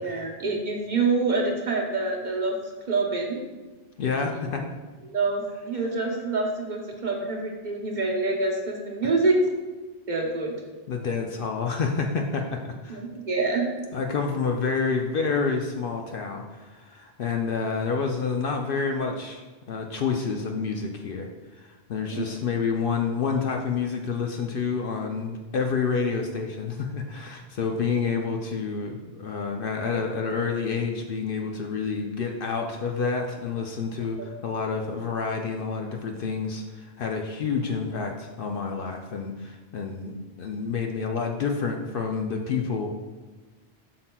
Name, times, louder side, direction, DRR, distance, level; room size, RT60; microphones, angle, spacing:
voice 1, 0.0-2.6 2.9-3.4 5.1-9.4 10.1-10.5 12.9-13.7 22.1-22.3, right 3 dB, 45° right, 0 dB, 0.8 m, -26 dB
voice 2, 4.0-4.7 10.9-13.0 13.9-19.4 19.7-21.3 21.5-42.9, left 5 dB, 60° left, 2 dB, 0.7 m, -28 dB
7.6 x 5.9 x 2.2 m, 1.3 s
omnidirectional pair, 1.2 m